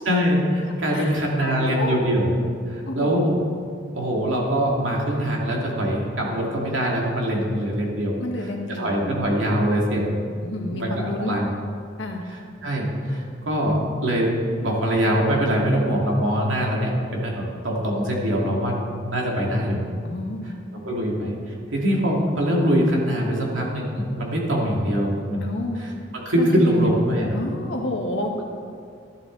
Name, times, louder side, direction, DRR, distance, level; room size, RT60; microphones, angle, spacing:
voice 1, 0.1-2.3 2.7-3.4 3.9-10.2 10.7-11.5 12.3-14.3 14.6-19.8 20.4-20.5 20.8-27.4, equal, 85° right, -2 dB, 2.6 m, -23 dB
voice 2, 0.9-2.0 2.8-3.2 8.2-9.3 10.4-11.3 12.0-12.2 20.0-20.5 25.4-25.8 26.4-26.9 27.3-28.3, left 1 dB, 70° left, 1 dB, 1.6 m, -30 dB
13.0 x 11.5 x 4.0 m, 2.2 s
head